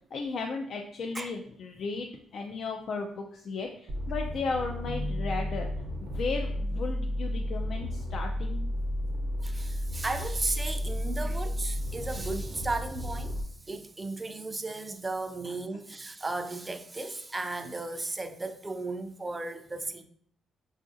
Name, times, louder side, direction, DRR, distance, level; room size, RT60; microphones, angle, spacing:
voice 1, 0.1-5.7 6.0-8.6 15.4-15.5, left 4 dB, 60° left, 0.3 m, -35 dB
sound 1, 3.9-13.4, equal, 60° right, 0.6 m, -32 dB
sound 2, 4.8-11.1, left 3 dB, 40° left, 0.8 m, -47 dB
voice 2, 9.4-13.4 13.7-20.0, right 2 dB, 20° right, 0.3 m, -35 dB
4.7 x 2.4 x 2.5 m
cardioid pair, 90°, 0 cm